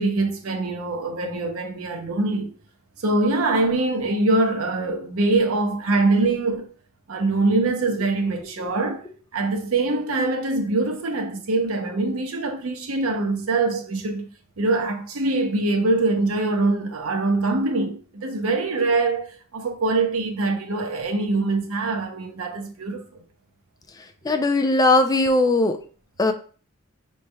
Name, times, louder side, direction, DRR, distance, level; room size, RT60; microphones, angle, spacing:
voice 1, 0.0-2.5 3.0-6.7 7.1-9.0 9.3-14.3 14.6-19.3 19.5-23.0, right 2 dB, 85° right, 0.7 m, -23 dB
voice 2, 24.2-25.8 26.2-26.3, left 2 dB, 20° left, 0.4 m, -19 dB
5.3 x 3.2 x 2.2 m
head